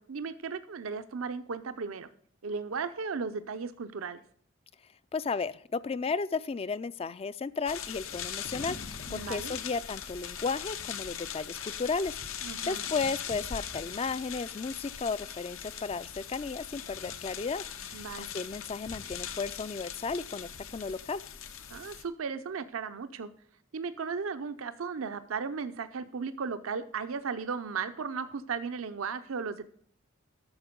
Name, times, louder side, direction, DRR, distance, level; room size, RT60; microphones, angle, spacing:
voice 1, 0.0-2.1 2.4-4.2 9.0-9.5 12.4-12.8 17.9-18.3 21.7-23.3 23.7-29.7, right 5 dB, 80° right, 10 dB, 0.6 m, -36 dB
voice 2, 5.1-21.2, left 4 dB, 30° left, 17 dB, 0.3 m, -34 dB
sound 1, 7.7-22.0, left 8 dB, 80° left, 0.8 m, -40 dB
12.0 x 7.0 x 5.1 m, 0.63 s
head